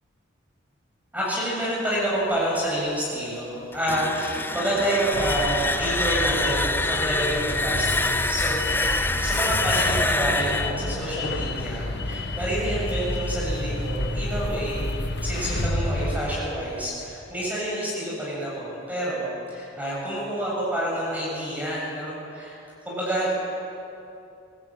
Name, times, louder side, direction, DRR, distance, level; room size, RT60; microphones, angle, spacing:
voice 1, 1.1-14.8 15.2-22.6 22.9-23.4, right 1 dB, 10° right, -6 dB, 7.4 m, -28 dB
sound 1, 3.7-12.5, left 2 dB, 10° left, 0.6 m, -27 dB
sound 2, 5.1-16.3, left 2 dB, 60° left, 1.8 m, -29 dB
24.5 x 19.0 x 9.0 m, 2.7 s
head